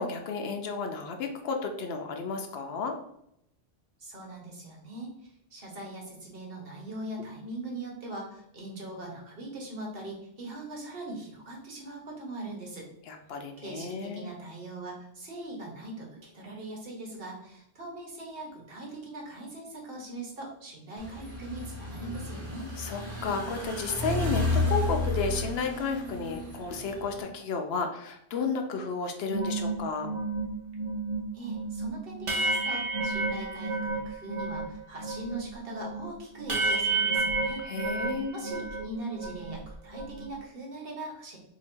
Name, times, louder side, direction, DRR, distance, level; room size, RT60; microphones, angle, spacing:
voice 1, 0.0-3.0 13.1-14.3 22.8-30.1 37.6-38.4, left 4 dB, 70° left, 4 dB, 0.8 m, -32 dB
voice 2, 4.0-12.9 13.6-22.7 31.3-37.6 37.9-41.4, right 2 dB, 60° right, -1 dB, 1.2 m, -41 dB
sound 1, 21.0-27.2, left 2 dB, 15° left, 0.7 m, -32 dB
sound 2, 29.3-34.7 35.0-38.9 39.1-40.3, right 3 dB, 40° right, 0.5 m, -31 dB
2.8 x 2.7 x 4.3 m, 0.75 s
omnidirectional pair, 1.1 m